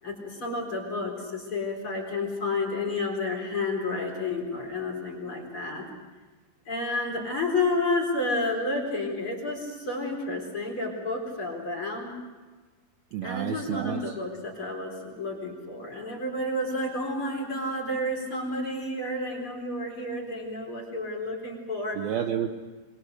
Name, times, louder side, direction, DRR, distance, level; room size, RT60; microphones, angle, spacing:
voice 1, 0.0-5.8 6.7-12.1 13.2-22.0, left 2 dB, 30° left, 1 dB, 4.6 m, -30 dB
voice 2, 13.1-14.0 22.0-22.5, right 10 dB, 70° right, 5 dB, 2.5 m, -30 dB
28.0 x 22.0 x 6.5 m, 1.3 s
omnidirectional pair, 5.2 m